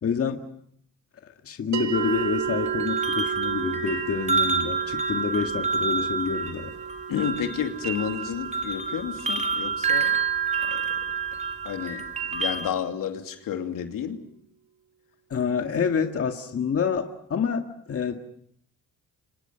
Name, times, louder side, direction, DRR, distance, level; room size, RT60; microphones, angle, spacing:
voice 1, 0.0-0.4 1.2-6.7 15.3-18.2, left 6 dB, 45° left, 5 dB, 1.9 m, -27 dB
sound 1, 1.7-12.3, right 7 dB, 55° right, 1.4 m, -36 dB
sound 2, 1.9-12.7, right 5 dB, 20° right, 2.6 m, -28 dB
voice 2, 7.1-10.2 10.6-10.8 11.6-14.2, left 8 dB, 75° left, 5 dB, 2.8 m, -31 dB
30.0 x 25.5 x 5.7 m, 0.68 s
cardioid pair, 95°, 34 cm